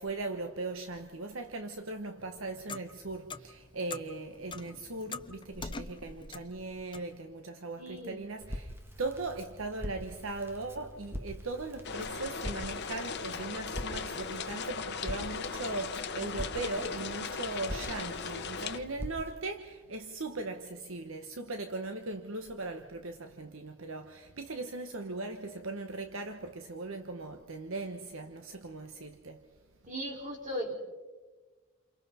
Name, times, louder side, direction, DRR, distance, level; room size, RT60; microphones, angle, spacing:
voice 1, 0.0-29.5, right 3 dB, 70° right, 1.2 m, -39 dB
Clock, 2.2-7.2, left 3 dB, 25° left, 0.8 m, -45 dB
voice 2, 7.8-8.2 29.9-30.7, equal, 40° right, 5.5 m, -37 dB
Crackle, 8.4-19.3, equal, 10° right, 1.8 m, -44 dB
sound 1, 11.8-18.8, left 5 dB, 55° left, 1.1 m, -38 dB
29.0 x 29.0 x 4.3 m
head